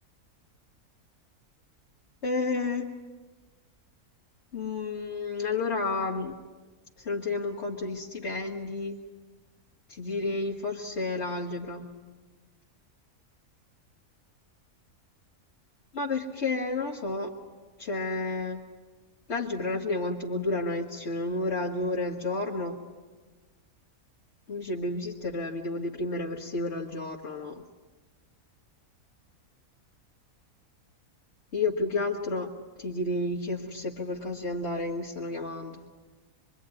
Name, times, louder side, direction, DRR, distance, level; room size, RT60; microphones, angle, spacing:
voice 1, 2.2-2.9 4.5-6.4 7.0-9.0 9.9-11.9 15.9-17.3 17.8-18.6 19.3-22.8 24.5-27.6 31.5-32.5 32.8-35.8, left 2 dB, 50° left, -2 dB, 2.1 m, -31 dB
25.5 x 23.5 x 9.8 m, 1.3 s
omnidirectional pair, 1.5 m